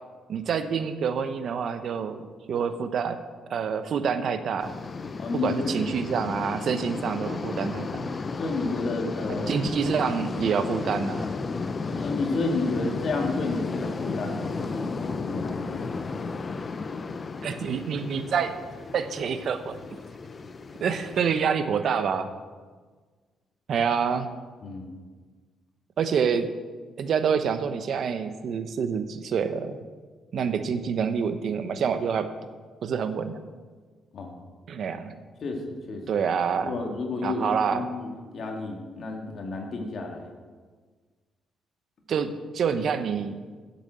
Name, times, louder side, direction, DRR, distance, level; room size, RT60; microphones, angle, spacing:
voice 1, 0.3-3.2 3.5-4.8 5.4-8.1 9.5-11.3 17.4-18.6 18.9-19.8 20.8-22.3 23.7-24.3 26.0-26.5 27.0-29.8 30.3-32.3 32.8-33.4 34.7-35.1 36.1-36.7 37.2-37.8 42.1-43.4, right 6 dB, 60° right, 10 dB, 0.8 m, -27 dB
sound 1, 4.6-21.4, left 4 dB, 35° left, 0.6 m, -33 dB
voice 2, 5.2-5.8 8.4-9.6 11.9-16.1 24.6-24.9 34.1-34.4 35.4-36.0 36.6-40.3, left 3 dB, 55° left, 1 dB, 2.0 m, -31 dB
8.3 x 7.3 x 7.5 m, 1.4 s
cardioid pair, 90°, 0 cm